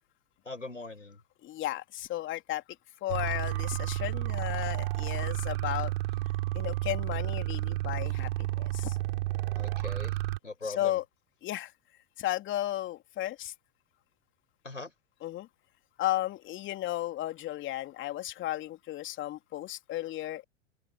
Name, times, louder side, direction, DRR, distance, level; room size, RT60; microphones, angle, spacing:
voice 1, 0.5-1.2 9.6-10.2 10.4-11.0 14.6-14.9, left 3 dB, 85° left, 5.3 m, -40 dB
voice 2, 1.4-2.6 3.0-5.9 6.5-9.0 10.6-11.0 11.4-11.7 12.2-13.5 15.2-15.5 16.0-20.4, left 14 dB, 30° left, 3.4 m, -34 dB
sound 1, 3.1-10.4, right 18 dB, 55° right, 6.2 m, -31 dB
open air
figure-of-eight pair, 90°, 37 cm